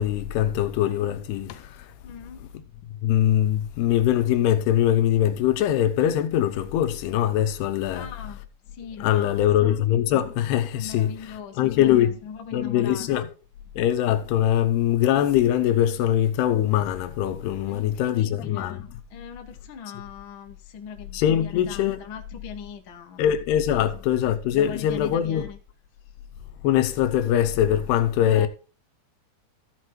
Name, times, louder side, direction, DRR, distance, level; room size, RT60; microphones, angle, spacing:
voice 1, 0.0-1.9 3.0-8.1 9.0-11.1 11.6-12.2 12.5-13.3 13.8-18.8 21.1-22.0 23.2-25.4 26.6-28.5, left 11 dB, 85° left, 2.9 m, -22 dB
voice 2, 2.0-2.4 7.9-9.5 10.7-13.2 17.7-23.4 23.7-24.0 24.5-25.6 28.1-28.5, left 7 dB, 60° left, 1.2 m, -40 dB
14.0 x 6.4 x 4.4 m
omnidirectional pair, 4.6 m